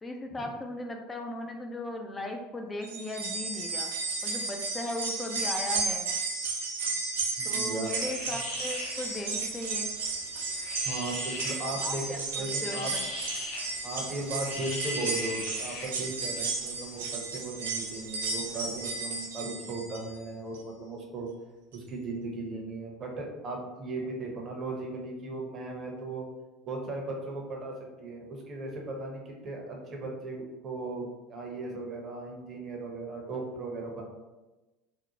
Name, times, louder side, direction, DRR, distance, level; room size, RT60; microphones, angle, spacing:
voice 1, 0.0-3.9 4.2-6.1 7.4-10.0 11.8-13.0, left 2 dB, 20° left, 3 dB, 0.3 m, -37 dB
sound 1, 2.8-20.1 20.5-20.6 21.7-21.8, right 4 dB, 85° right, 0.4 m, -33 dB
voice 2, 7.4-7.9 8.3-8.4 10.8-12.9 13.8-21.3 21.7-26.3 26.6-34.0, right 2 dB, 40° right, 0 dB, 0.7 m, -37 dB
sound 2, 7.8-19.2, left 2 dB, 70° left, 0.8 m, -43 dB
2.6 x 2.1 x 2.8 m, 1.1 s
hypercardioid pair, 85°, 0 cm